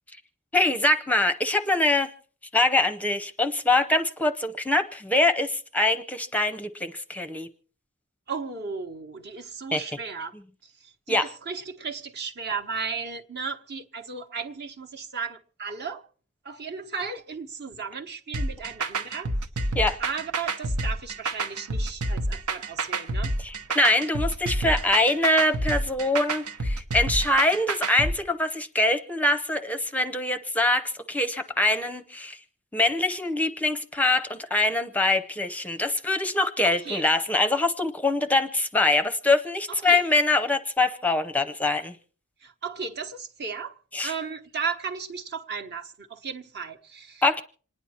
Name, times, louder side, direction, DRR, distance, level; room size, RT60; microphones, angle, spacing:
voice 1, 0.5-2.1 2.5-7.5 9.7-9.8 11.1-11.3 19.7-20.0 23.4-32.4 32.7-42.0 43.9-44.1 47.2-47.4, left 2 dB, 5° left, 0.6 m, -24 dB
voice 2, 8.3-10.3 10.6-16.0 16.4-19.3 20.0-23.3 36.6-37.1 39.7-40.0 42.4-47.2, right 5 dB, 50° right, 1.2 m, -35 dB
sound 1, 18.3-28.1, right 2 dB, 80° right, 1.1 m, -28 dB
27.0 x 10.0 x 4.3 m
head